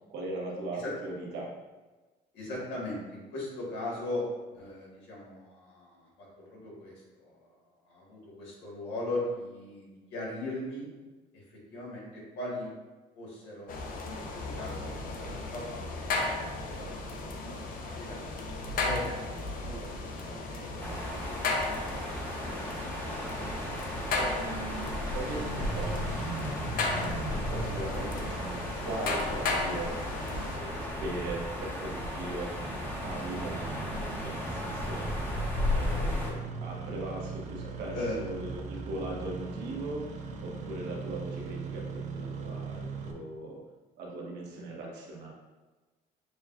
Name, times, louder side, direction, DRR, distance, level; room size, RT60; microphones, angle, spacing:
voice 1, 0.1-1.5 2.5-2.6 20.2-20.4 23.4-23.6 23.9-26.1 26.3-30.0 30.5-32.6 33.0-35.1 35.7-43.6 44.0-45.3, right 2 dB, 80° right, -2 dB, 1.0 m, -39 dB
voice 2, 2.3-4.3 4.5-6.9 7.2-7.5 7.8-10.9 11.3-12.7 13.1-16.1 16.7-17.0 17.4-21.1 21.9-22.1 37.6-38.2, left 1 dB, 85° left, -4 dB, 1.5 m, -39 dB
sound 1, 13.7-30.6, left 3 dB, 55° left, 0.6 m, -35 dB
sound 2, 20.8-36.3, left 1 dB, 10° left, 0.8 m, -35 dB
Engine starting, 25.1-43.1, right 3 dB, 45° right, 0.5 m, -40 dB
6.6 x 2.3 x 2.4 m, 1.2 s
cardioid pair, 110°, 17 cm